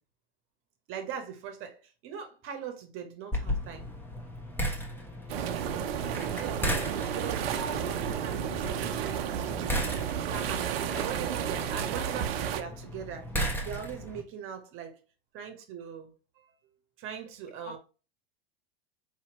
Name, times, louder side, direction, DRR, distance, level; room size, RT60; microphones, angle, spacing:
voice 1, 0.9-3.9 6.4-6.7 7.1-9.8 10.2-15.0 15.3-16.5 17.0-17.8, right 7 dB, 45° right, 1.0 m, -41 dB
sound 1, 3.3-14.2, equal, 5° left, 1.0 m, -36 dB
voice 2, 4.9-5.7 10.9-11.0 17.6-17.8, left 3 dB, 30° left, 1.2 m, -48 dB
sound 2, 5.3-12.6, right 9 dB, 70° right, 0.6 m, -32 dB
4.4 x 2.9 x 2.9 m
hypercardioid pair, 95°, 31 cm